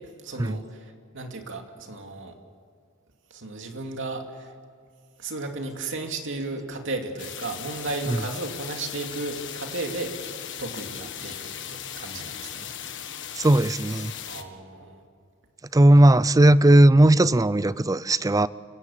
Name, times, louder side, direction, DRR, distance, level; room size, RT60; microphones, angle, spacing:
voice 1, 0.2-2.3 3.3-4.5 5.2-10.3 10.6-12.7 14.3-15.1, right 3 dB, 60° right, 2.6 m, -34 dB
sound 1, 7.2-14.4, left 9 dB, 60° left, 1.6 m, -37 dB
voice 2, 13.3-14.1 15.7-18.5, right 1 dB, 15° right, 0.5 m, -17 dB
29.5 x 16.5 x 7.3 m
head